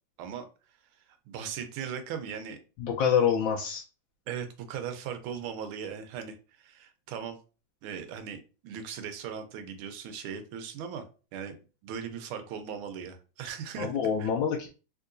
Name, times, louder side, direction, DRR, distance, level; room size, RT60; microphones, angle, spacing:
voice 1, 1.3-2.6 4.3-7.4 7.8-11.0 11.3-11.6 11.8-13.9 14.2-14.3, right 7 dB, 90° right, 8 dB, 1.5 m, -38 dB
voice 2, 2.8-3.8 13.8-14.7, left 7 dB, 75° left, 0 dB, 1.3 m, -26 dB
3.7 x 2.9 x 2.5 m, 0.34 s
omnidirectional pair, 2.2 m